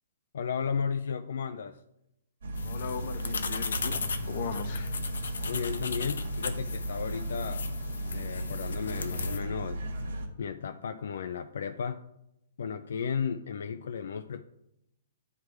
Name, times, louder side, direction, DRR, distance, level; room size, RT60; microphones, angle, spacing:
voice 1, 0.3-1.8 5.4-7.7 8.1-9.8 10.4-12.0 12.6-14.4, left 6 dB, 65° left, 8 dB, 0.4 m, -34 dB
sound 1, 2.4-10.3, right 1 dB, 75° right, 1.6 m, -35 dB
sound 2, 2.6-9.4, left 5 dB, 85° left, 0.7 m, -37 dB
voice 2, 2.6-4.0 4.3-4.9, left 6 dB, 40° left, 8 dB, 0.7 m, -38 dB
9.7 x 3.3 x 4.6 m, 0.83 s
hypercardioid pair, 165°, 0 cm